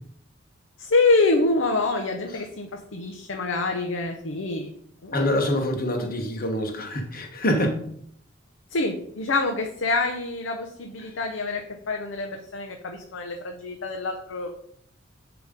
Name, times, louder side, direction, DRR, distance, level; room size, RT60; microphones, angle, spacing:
voice 1, 0.8-4.7 5.0-5.2 8.7-14.6, left 3 dB, 70° left, 0.6 m, -26 dB
voice 2, 5.1-7.8 11.0-11.1, left 1 dB, 50° left, 1.1 m, -25 dB
7.1 x 3.0 x 5.1 m
head